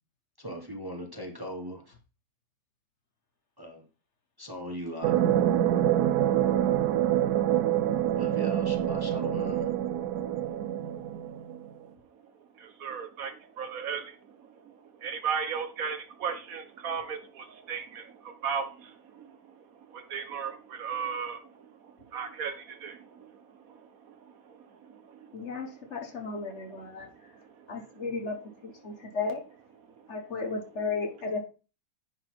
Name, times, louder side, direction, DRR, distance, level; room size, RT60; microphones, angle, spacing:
voice 1, 0.4-2.0 3.6-3.9 4.4-5.1 8.2-9.7, equal, 20° right, 0.8 m, -39 dB
sound 1, 5.0-11.7, right 11 dB, 85° right, 1.1 m, -26 dB
voice 2, 10.4-29.2 29.8-30.8, right 6 dB, 70° right, 1.3 m, -39 dB
voice 3, 25.3-27.1 27.7-29.4 30.1-31.4, left 4 dB, 50° left, 1.4 m, -34 dB
10.0 x 3.9 x 4.5 m
omnidirectional pair, 1.6 m